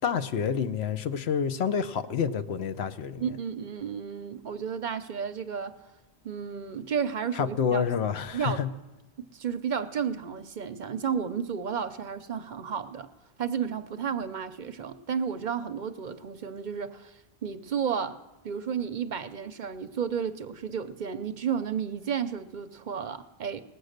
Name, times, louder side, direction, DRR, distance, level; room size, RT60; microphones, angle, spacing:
voice 1, 0.0-3.2 7.4-8.7, left 7 dB, 80° left, 0.9 m, -28 dB
voice 2, 3.2-5.8 6.2-7.9 8.3-8.7 9.2-13.1 13.4-18.2 18.4-23.6, right 7 dB, 55° right, 0.7 m, -32 dB
19.0 x 8.1 x 6.5 m
omnidirectional pair, 1.1 m